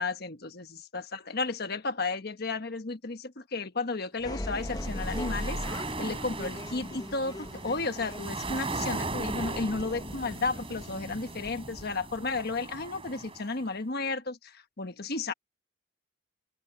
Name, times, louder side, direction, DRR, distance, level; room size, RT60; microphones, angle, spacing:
voice 1, 0.0-5.6 6.0-15.3, left 3 dB, 50° left, 1.3 m, -33 dB
sound 1, 4.2-12.8, left 1 dB, 20° left, 0.9 m, -40 dB
sound 2, 4.4-13.7, right 3 dB, 30° right, 4.2 m, -38 dB
head